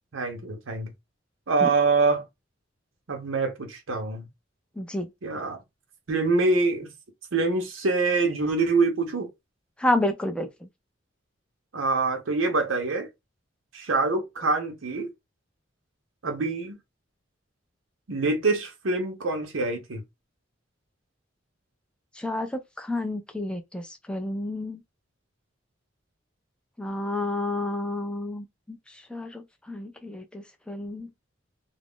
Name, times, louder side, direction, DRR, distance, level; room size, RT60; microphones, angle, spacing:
voice 1, 0.1-0.9 1.5-2.2 3.1-4.2 5.2-5.6 6.1-6.9 7.3-9.3 11.7-13.1 13.7-15.1 16.2-16.8 18.1-20.0, right 3 dB, 80° right, 0.7 m, -25 dB
voice 2, 4.8-5.1 9.8-10.7 22.2-24.8 26.8-28.8 29.1-31.1, left 1 dB, 5° left, 0.3 m, -30 dB
2.4 x 2.0 x 3.5 m
head